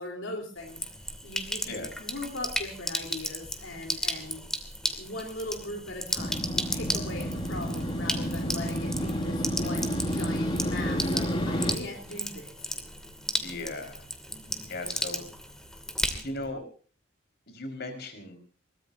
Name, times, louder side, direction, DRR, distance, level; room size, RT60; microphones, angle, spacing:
voice 1, 0.0-1.7 2.0-4.4 5.0-12.7, left 2 dB, 80° left, 1 dB, 3.8 m, -39 dB
Sink (filling or washing), 0.6-16.5, equal, 5° left, 2.6 m, -35 dB
Motorcycle, 6.2-11.8, equal, 25° left, 2.5 m, -30 dB
voice 2, 13.4-14.1 14.7-15.2 16.2-16.6 17.5-18.4, left 2 dB, 55° left, 6 dB, 5.2 m, -37 dB
23.0 x 21.0 x 2.8 m, 0.41 s
head